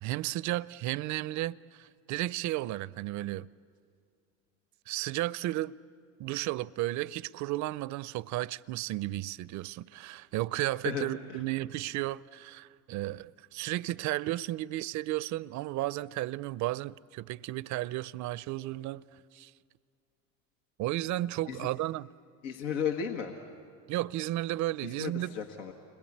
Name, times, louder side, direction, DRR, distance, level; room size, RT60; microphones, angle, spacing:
voice 1, 0.0-3.5 4.9-5.8 6.2-19.0 19.3-19.5 20.8-22.1 23.9-25.3, right 16 dB, 50° right, 0.6 m, -33 dB
voice 2, 10.8-11.4 21.5-21.7 22.4-23.4 24.8-25.7, left 7 dB, 80° left, 1.6 m, -34 dB
29.5 x 22.0 x 8.6 m
hypercardioid pair, 80°, 38 cm